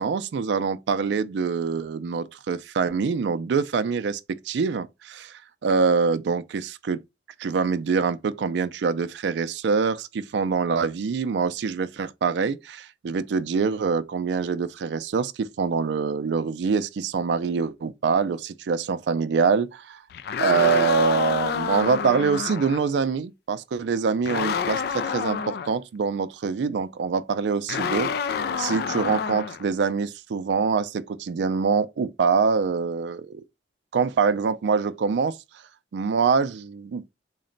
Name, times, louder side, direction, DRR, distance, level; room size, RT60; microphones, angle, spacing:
voice 1, 0.0-4.2 4.5-7.0 7.4-20.0 20.4-33.4 33.9-35.4 35.9-37.1, right 5 dB, 80° right, 0.4 m, -25 dB
sound 1, 20.1-22.8 24.2-25.7 27.7-29.6, left 6 dB, 60° left, 0.3 m, -28 dB
3.9 x 2.1 x 3.8 m
head